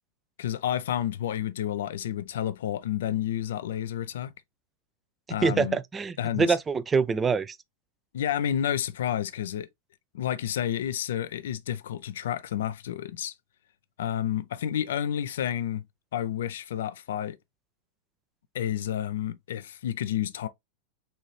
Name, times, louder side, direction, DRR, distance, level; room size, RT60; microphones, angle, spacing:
voice 1, 0.4-4.3 5.3-5.8 6.2-6.6 8.1-9.7 10.1-13.3 14.0-15.8 16.1-17.4 18.5-20.5, left 10 dB, 70° left, 0.4 m, -30 dB
voice 2, 5.4-7.6, right 5 dB, 20° right, 0.4 m, -25 dB
4.2 x 2.7 x 3.1 m
hypercardioid pair, 100°, 0 cm